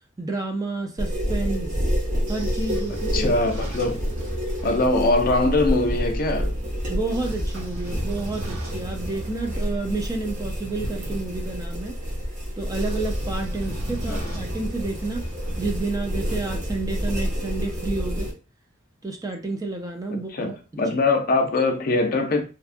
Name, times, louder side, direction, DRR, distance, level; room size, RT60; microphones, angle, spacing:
voice 1, 0.2-1.8 2.3-3.4 6.9-12.0 12.6-15.2 15.6-18.3 19.0-20.8, right 3 dB, 20° right, 0.4 m, -30 dB
sound 1, 1.0-18.3, equal, 40° right, 0.7 m, -29 dB
Train / Sliding door, 2.0-6.0 6.9-11.7 12.6-16.4, right 1 dB, 85° right, 0.8 m, -37 dB
voice 2, 3.1-4.0 4.6-6.6 14.1-14.4 20.3-22.4, left 2 dB, 45° left, 0.5 m, -22 dB
2.7 x 2.3 x 2.5 m
head